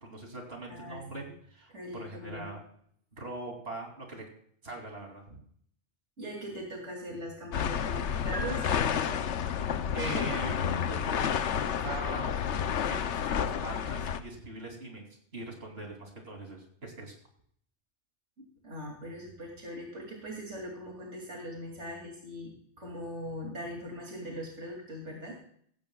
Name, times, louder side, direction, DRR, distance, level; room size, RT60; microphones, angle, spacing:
voice 1, 0.0-2.6 3.1-4.2 4.6-5.4 9.9-10.6 10.8-15.1 15.3-17.1, right 2 dB, 60° right, 1 dB, 3.3 m, -41 dB
voice 2, 0.7-1.3 1.7-2.5 6.2-9.2 18.4-25.3, equal, 85° right, -2 dB, 3.1 m, -41 dB
sound 1, 7.5-14.2, left 8 dB, 80° left, 1.1 m, -30 dB
sound 2, 8.3-9.6, right 1 dB, 5° left, 1.8 m, -42 dB
16.0 x 15.5 x 2.4 m, 0.63 s
omnidirectional pair, 1.2 m